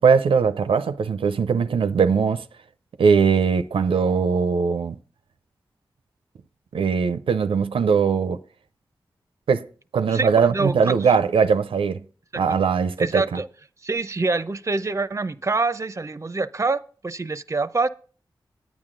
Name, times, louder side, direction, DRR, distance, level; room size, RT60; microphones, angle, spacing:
voice 1, 0.0-2.4 3.0-5.0 6.7-8.4 9.5-9.6 9.9-12.0 12.4-13.4, right 6 dB, 90° right, 0.4 m, -20 dB
voice 2, 10.1-11.0 12.3-12.4 13.0-13.5 13.8-17.9, right 3 dB, 35° right, 0.5 m, -25 dB
10.5 x 9.0 x 3.8 m
cardioid pair, 40°, 9 cm